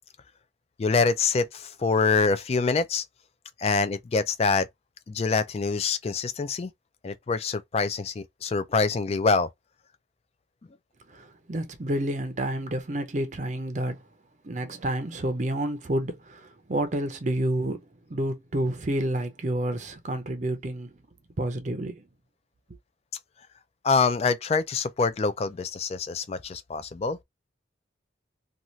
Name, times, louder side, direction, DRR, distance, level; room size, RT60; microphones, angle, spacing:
voice 1, 0.8-3.0 3.6-4.7 5.1-6.7 7.0-9.5 23.8-27.2, left 4 dB, 30° left, 0.3 m, -25 dB
voice 2, 11.1-14.0 14.4-17.8 18.1-20.9 21.4-22.0, right 1 dB, 40° right, 0.5 m, -29 dB
2.7 x 2.4 x 3.1 m
head